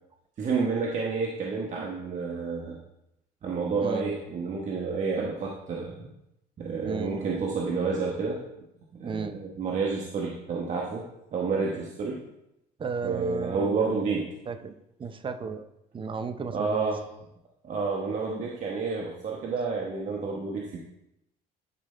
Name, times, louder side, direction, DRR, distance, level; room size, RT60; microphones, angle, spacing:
voice 1, 0.4-2.8 3.4-6.1 6.6-8.4 9.0-11.0 11.3-12.2 13.0-14.3 16.5-17.0 17.6-20.8, right 4 dB, 45° right, -2 dB, 1.2 m, -29 dB
voice 2, 6.8-7.3 9.0-9.4 12.8-13.8 14.5-14.7 15.0-15.6 15.9-16.9, right 5 dB, 30° right, 9 dB, 0.6 m, -34 dB
11.0 x 4.8 x 3.3 m, 0.84 s
cardioid pair, 110°, 17 cm